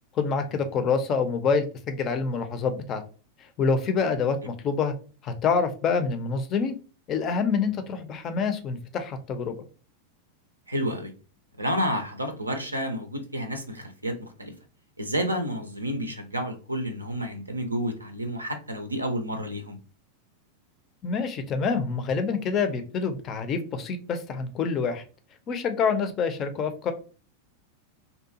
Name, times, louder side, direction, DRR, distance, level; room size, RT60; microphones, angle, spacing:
voice 1, 0.1-3.0 3.6-4.9 5.2-6.8 7.1-9.6 21.0-25.0 25.5-26.9, left 5 dB, 30° left, 8 dB, 0.4 m, -26 dB
voice 2, 10.7-11.1 11.6-14.5 15.0-19.8, equal, 85° right, 6 dB, 0.4 m, -30 dB
2.7 x 2.2 x 2.6 m, 0.37 s
figure-of-eight pair, 90°, 0 cm